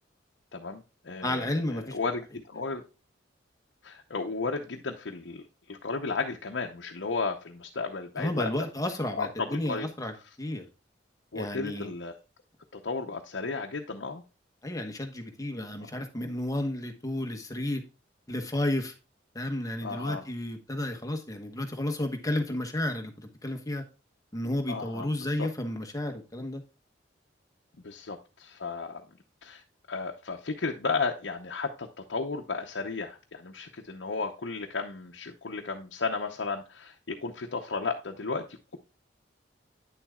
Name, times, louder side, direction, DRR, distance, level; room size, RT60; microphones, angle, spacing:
voice 1, 0.5-2.8 3.8-8.5 9.2-9.9 11.3-12.2 12.7-14.2 15.8-15.9 19.8-20.2 24.7-25.5 27.8-29.0 29.4-29.6 29.9-38.8, left 4 dB, 80° left, 0.8 m, -34 dB
voice 2, 1.2-2.0 8.2-10.6 11.3-11.9 14.6-17.8 18.3-18.9 19.3-23.8 24.3-26.6, left 1 dB, 20° left, 1.2 m, -32 dB
9.3 x 7.2 x 2.3 m
head